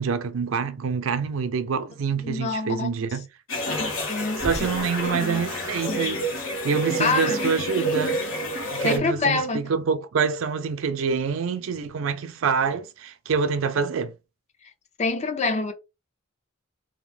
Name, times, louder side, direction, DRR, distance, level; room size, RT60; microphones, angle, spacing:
voice 1, 0.0-3.2 4.4-6.3 6.6-8.2 8.7-14.1, right 5 dB, 80° right, 0.4 m, -26 dB
voice 2, 2.2-3.0 3.7-4.7 5.0-5.4 5.9-6.2 7.0-7.5 8.8-9.7 15.0-15.7, left 3 dB, 35° left, 0.5 m, -27 dB
sound 1, 3.5-9.0, equal, 80° left, 1.0 m, -29 dB
2.8 x 2.0 x 3.3 m
head